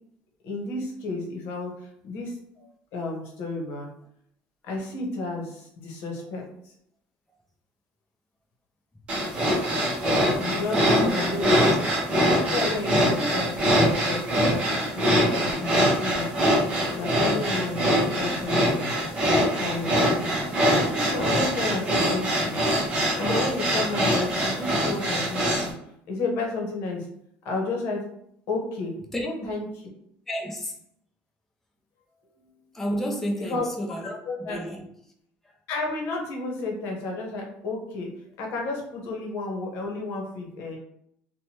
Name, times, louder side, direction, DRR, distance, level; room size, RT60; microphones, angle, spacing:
voice 1, 0.4-3.9 4.6-6.7 10.4-11.7 12.5-14.2 14.9-16.3 16.9-19.0 19.3-20.5 20.9-22.6 23.1-25.7 26.1-27.1 27.4-28.1 28.5-29.7 32.4-32.6 33.4-33.7 34.0-34.6 35.7-38.1 38.4-40.8, left 3 dB, 60° left, 0.9 m, -32 dB
sound 1, 9.1-25.7, equal, 25° right, 0.7 m, -23 dB
voice 2, 10.8-11.2 11.6-11.7 29.1-29.3 30.3-30.8 32.7-34.1 34.4-34.9, equal, 5° left, 0.4 m, -30 dB
3.1 x 2.2 x 2.8 m
cardioid pair, 170°, 5 cm